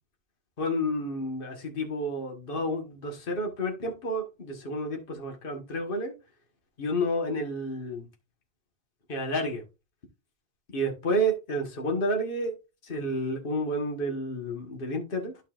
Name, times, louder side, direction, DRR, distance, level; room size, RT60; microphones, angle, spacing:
voice 1, 0.6-6.1 6.8-8.1 9.1-9.6 10.7-12.5 12.8-15.4, equal, 50° left, 1.6 m, -30 dB
11.5 x 5.4 x 2.5 m
omnidirectional pair, 1.2 m